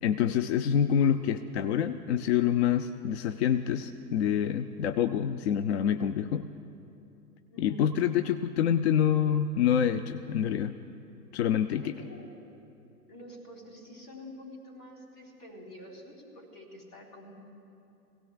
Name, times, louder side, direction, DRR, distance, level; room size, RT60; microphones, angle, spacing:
voice 1, 0.0-6.4 7.6-10.7 11.3-11.8, left 9 dB, 45° left, 10 dB, 0.4 m, -26 dB
voice 2, 7.5-7.9 11.7-12.3 13.1-17.3, left 1 dB, 70° left, -2 dB, 4.2 m, -47 dB
23.5 x 17.0 x 2.4 m, 2.7 s
figure-of-eight pair, 100°, 48 cm